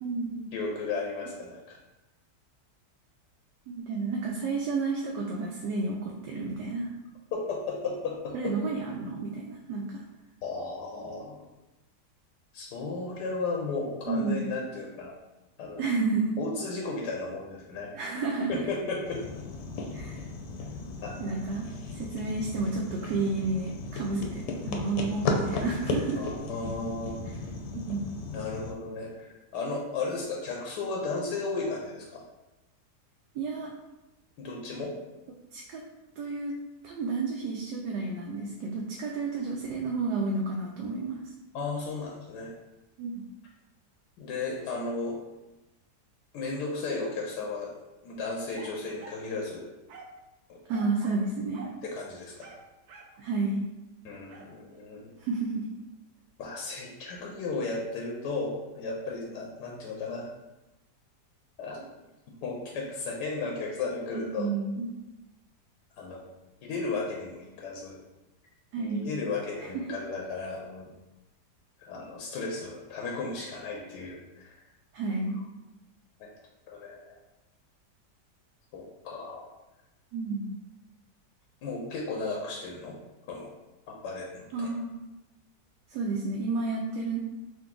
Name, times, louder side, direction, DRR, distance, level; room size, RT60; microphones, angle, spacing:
voice 1, 0.0-0.5 3.7-6.9 8.3-10.0 14.1-14.4 15.8-16.4 17.9-18.5 19.9-20.2 21.2-21.7 21.9-26.2 27.9-28.1 33.3-33.7 35.5-35.8 36.2-36.6 36.8-41.2 43.0-43.2 50.7-51.7 53.2-53.6 55.2-55.7 64.1-64.9 68.7-69.1 69.7-69.8 74.9-75.4 80.1-80.6 84.5-84.9 85.9-87.2, right 3 dB, 90° right, -1 dB, 1.2 m, -31 dB
voice 2, 0.5-1.8 7.3-8.3 10.4-11.4 12.5-15.1 15.6-15.9 16.4-17.9 18.5-19.2 21.0-21.4 26.1-27.2 28.3-32.2 34.4-34.9 41.5-42.5 44.2-45.2 46.3-47.7 48.0-49.7 50.5-50.6 51.8-52.5 54.0-55.1 56.4-60.3 61.6-61.8 62.4-64.5 66.0-66.2 66.6-68.0 68.8-70.9 71.8-74.5 76.2-76.3 76.7-77.2 78.7-79.5 81.6-83.0 83.3-83.5 83.9-84.7, left 3 dB, 90° left, -1 dB, 1.2 m, -34 dB
sound 1, 19.0-28.7, left 3 dB, 75° left, 1.0 m, -35 dB
sound 2, 48.5-49.3 49.9-50.2 50.7-51.3 51.5-51.8 52.4-53.2 54.3-54.5, right 4 dB, 70° right, 0.6 m, -47 dB
3.8 x 2.6 x 3.7 m, 1.0 s
omnidirectional pair, 1.8 m